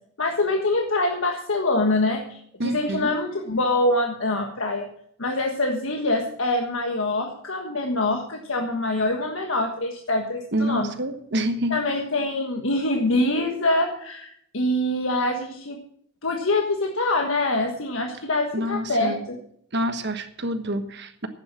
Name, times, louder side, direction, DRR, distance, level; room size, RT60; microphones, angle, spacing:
voice 1, 0.2-4.9 5.2-10.9 11.7-15.8 16.2-19.4, left 2 dB, 80° left, 2 dB, 1.5 m, -24 dB
voice 2, 2.6-3.1 10.5-11.8 18.5-19.2 19.7-21.3, right 1 dB, 60° right, 8 dB, 1.3 m, -27 dB
11.5 x 8.9 x 7.4 m, 0.66 s
head